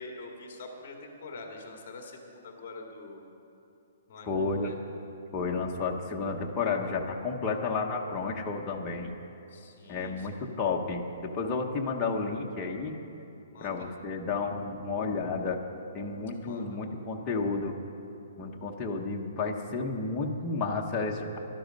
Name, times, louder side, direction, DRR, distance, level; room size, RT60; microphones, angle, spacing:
voice 1, 0.0-3.2 4.1-4.8 9.5-10.3 13.5-13.9 16.5-17.0, left 3 dB, 30° left, 1 dB, 1.8 m, -45 dB
voice 2, 4.3-4.7 5.3-9.1 9.9-13.0 13.6-15.6 15.9-17.8 18.4-21.4, left 4 dB, 15° left, -1 dB, 0.8 m, -31 dB
17.0 x 12.0 x 5.3 m, 2.9 s
hypercardioid pair, 175°, 0 cm